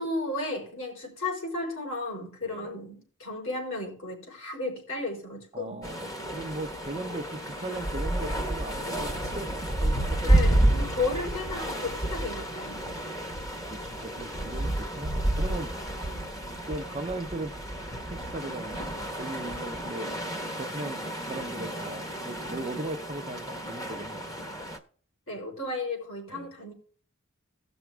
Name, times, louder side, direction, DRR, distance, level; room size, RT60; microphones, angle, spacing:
voice 1, 0.0-5.8 10.2-12.8 16.0-16.3 25.3-26.7, left 2 dB, 65° left, 4.2 m, -34 dB
voice 2, 5.5-10.3 13.0-13.3 13.7-15.7 16.7-17.5 18.1-20.1 20.6-24.3 26.3-26.5, right 2 dB, 30° right, 0.7 m, -38 dB
sound 1, 5.8-24.8, right 1 dB, 15° left, 1.2 m, -30 dB
18.0 x 6.0 x 3.4 m
head